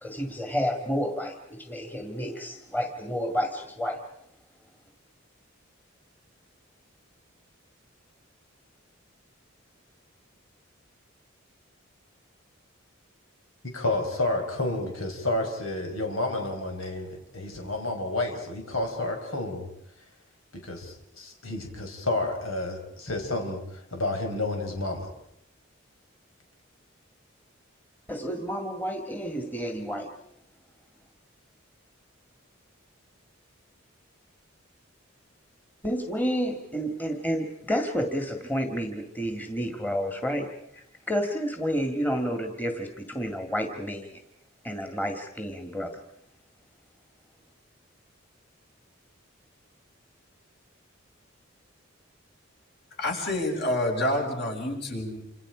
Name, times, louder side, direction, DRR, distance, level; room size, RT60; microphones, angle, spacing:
voice 1, 0.0-4.0 28.1-30.1 35.8-40.5 40.7-44.2 44.6-46.0, equal, 10° left, 5 dB, 1.9 m, -30 dB
voice 2, 13.6-19.7 20.5-25.1, left 2 dB, 90° left, 3 dB, 5.0 m, -30 dB
voice 3, 53.0-55.3, left 1 dB, 55° left, 1 dB, 6.4 m, -28 dB
28.0 x 27.5 x 5.1 m, 0.73 s
head